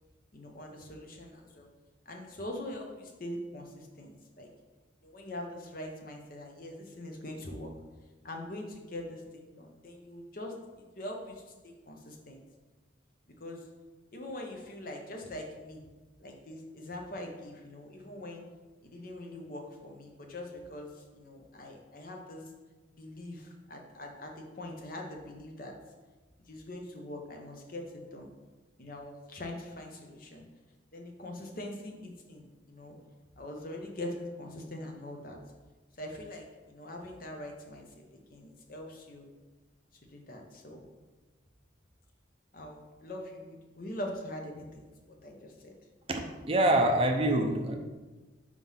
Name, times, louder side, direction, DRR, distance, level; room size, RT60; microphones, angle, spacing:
voice 1, 0.3-1.7 2.1-4.5 5.0-7.7 8.2-10.5 10.9-12.4 13.3-13.6 14.1-15.8 16.2-18.5 18.8-22.4 23.0-25.7 26.5-28.3 28.8-30.4 30.9-32.9 33.4-35.4 36.0-37.9 38.1-39.3 40.1-40.9 42.5-45.7, left 1 dB, 50° left, 2 dB, 0.9 m, -43 dB
voice 2, 46.1-47.8, right 1 dB, 30° right, 3 dB, 0.5 m, -26 dB
4.8 x 3.8 x 5.6 m, 1.2 s
head